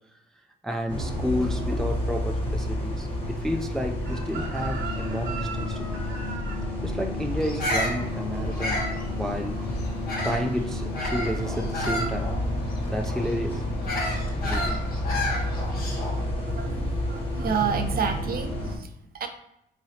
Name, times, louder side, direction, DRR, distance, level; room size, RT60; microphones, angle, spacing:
voice 1, 0.6-6.0 6.8-8.9 9.2-9.6 10.2-12.4 12.9-13.7 14.4-14.9, equal, ahead, 3 dB, 0.3 m, -31 dB
sound 1, 0.9-18.8, left 1 dB, 25° left, 1.3 m, -30 dB
Chicken rooster, 4.1-9.0 9.3-9.6, right 5 dB, 75° right, 0.9 m, -39 dB
Bird vocalization bird call bird song, 7.4-10.5 10.9-16.2, left 1 dB, 50° left, 1.1 m, -31 dB
voice 2, 16.5-19.3, right 6 dB, 50° right, 7 dB, 0.5 m, -30 dB
3.7 x 3.1 x 2.7 m, 0.77 s
cardioid pair, 90°, 20 cm